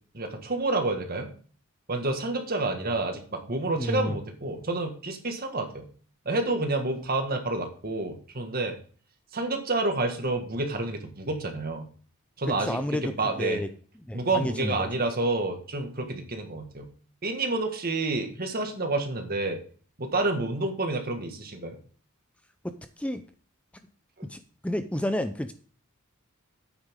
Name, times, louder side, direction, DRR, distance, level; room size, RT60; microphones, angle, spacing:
voice 1, 0.1-1.3 1.9-5.9 6.3-8.8 9.3-11.9 12.4-13.6 14.1-16.9 17.2-19.6 20.0-21.8 24.2-24.3, right 2 dB, 45° right, 5 dB, 1.8 m, -29 dB
voice 2, 3.8-4.2 12.5-13.7 14.1-14.9 22.6-23.2 24.3-25.5, left 1 dB, 5° left, 9 dB, 0.5 m, -31 dB
9.6 x 9.0 x 3.7 m, 0.43 s
head